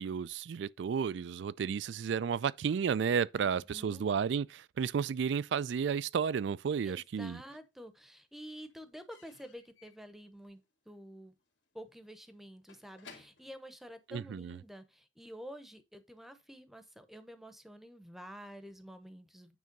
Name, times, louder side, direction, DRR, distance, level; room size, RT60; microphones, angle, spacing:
voice 1, 0.0-7.4 14.1-14.6, right 6 dB, 75° right, 0.3 m, -32 dB
voice 2, 3.4-4.0 6.8-11.4 11.7-19.6, equal, ahead, 0.8 m, -50 dB
Slam / Squeak / Wood, 6.8-7.7 7.9-14.7, left 4 dB, 80° left, 2.5 m, -61 dB
9.3 x 3.4 x 5.2 m
head